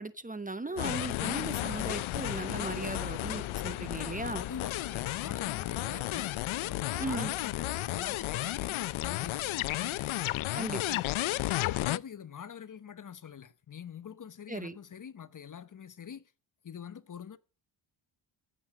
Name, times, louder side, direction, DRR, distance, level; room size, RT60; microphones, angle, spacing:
voice 1, 0.0-4.4 7.0-7.3 10.5-11.0 14.5-14.8, right 2 dB, 15° right, 0.8 m, -37 dB
sound 1, 0.8-12.0, left 17 dB, 70° left, 0.6 m, -33 dB
sound 2, 2.9-8.7, left 1 dB, 20° left, 7.5 m, -53 dB
voice 2, 4.4-6.3 6.6-9.5 9.8-10.3 11.4-16.2 16.6-17.4, left 8 dB, 40° left, 0.9 m, -45 dB
15.5 x 7.6 x 6.3 m
cardioid pair, 80°, 49 cm